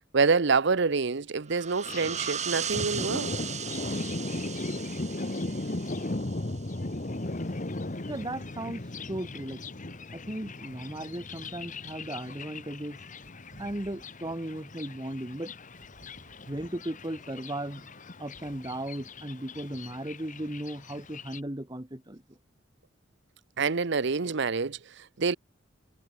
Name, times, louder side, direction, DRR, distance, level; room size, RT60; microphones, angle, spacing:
voice 1, 0.1-3.3 23.6-25.4, right 4 dB, 65° right, 0.8 m, -26 dB
sound 1, 1.5-6.8, right 8 dB, 35° right, 1.6 m, -37 dB
Thunder, 1.8-21.4, left 2 dB, 40° left, 1.5 m, -38 dB
voice 2, 8.1-9.6 10.1-13.0 13.6-15.5 16.5-17.9 18.2-22.4, right 1 dB, 20° right, 2.1 m, -36 dB
head